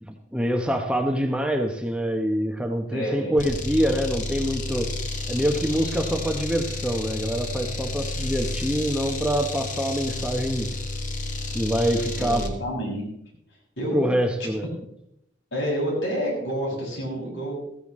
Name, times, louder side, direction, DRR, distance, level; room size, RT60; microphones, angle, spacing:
voice 1, 0.0-4.9 5.3-10.7 11.5-12.5 13.9-14.7, equal, 5° right, 4 dB, 0.9 m, -25 dB
voice 2, 2.9-3.3 12.2-13.1 13.8-14.1 14.4-14.5 15.5-17.6, equal, 80° left, -3 dB, 6.6 m, -28 dB
sound 1, 3.4-12.6, left 2 dB, 40° left, 1.3 m, -31 dB
15.0 x 14.5 x 3.2 m, 0.79 s
head